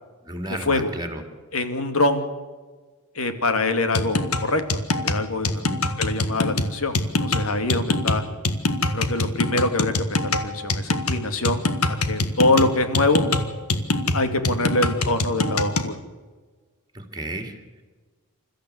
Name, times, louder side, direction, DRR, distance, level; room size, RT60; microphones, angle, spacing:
voice 1, 0.2-1.2 5.5-5.9 16.9-17.8, right 1 dB, 20° right, 5 dB, 2.8 m, -33 dB
voice 2, 1.5-2.3 3.1-5.7 6.0-8.2 8.9-9.9 10.2-11.7 12.1-13.2 14.1-15.9, left 2 dB, 65° left, 8 dB, 2.4 m, -24 dB
sound 1, 3.9-15.9, left 2 dB, 85° left, 1.7 m, -24 dB
28.5 x 14.0 x 8.1 m, 1.4 s
head